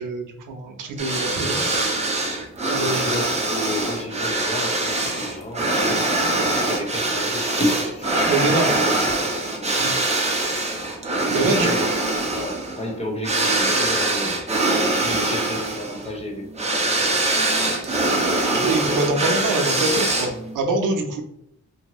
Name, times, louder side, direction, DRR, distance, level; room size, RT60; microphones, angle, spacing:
voice 1, 0.0-2.0 2.7-3.1 8.3-8.7 9.8-10.0 11.3-11.7 17.8-18.0 18.5-21.2, right 2 dB, 90° right, 4 dB, 0.6 m, -25 dB
sound 1, 1.0-20.6, right 2 dB, 20° right, 0.6 m, -23 dB
voice 2, 2.8-9.2 9.5-9.9 11.2-17.3, left 1 dB, 20° left, 0 dB, 0.7 m, -32 dB
2.7 x 2.6 x 3.0 m, 0.73 s
cardioid pair, 105°, 31 cm